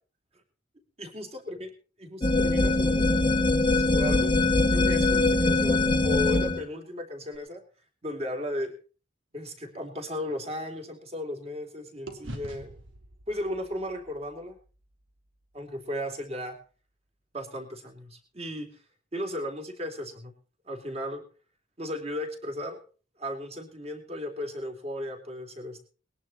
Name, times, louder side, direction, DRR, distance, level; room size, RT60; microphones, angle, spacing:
voice 1, 1.0-1.7 2.0-3.1 3.7-4.4 4.7-7.6 8.0-8.7 9.3-12.7 13.3-14.6 15.5-16.6 17.3-18.7 19.1-20.3 20.6-21.2 21.8-22.8 23.2-25.9, left 1 dB, 35° right, 4 dB, 3.3 m, -35 dB
sound 1, 2.2-6.7, left 2 dB, 25° left, 1.1 m, -22 dB
sound 2, 9.4-11.7 12.1-16.3, right 1 dB, 85° right, 3.1 m, -47 dB
20.5 x 11.0 x 4.3 m, 0.38 s
head